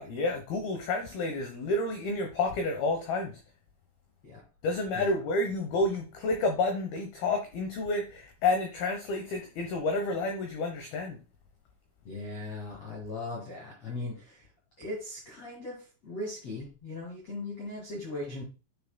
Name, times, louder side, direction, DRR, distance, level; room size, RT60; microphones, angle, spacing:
voice 1, 0.0-3.4 4.6-11.2, left 2 dB, 75° left, 2.3 m, -30 dB
voice 2, 12.0-14.5 14.8-18.4, left 2 dB, 50° left, 2.1 m, -39 dB
9.5 x 7.3 x 2.2 m
omnidirectional pair, 5.9 m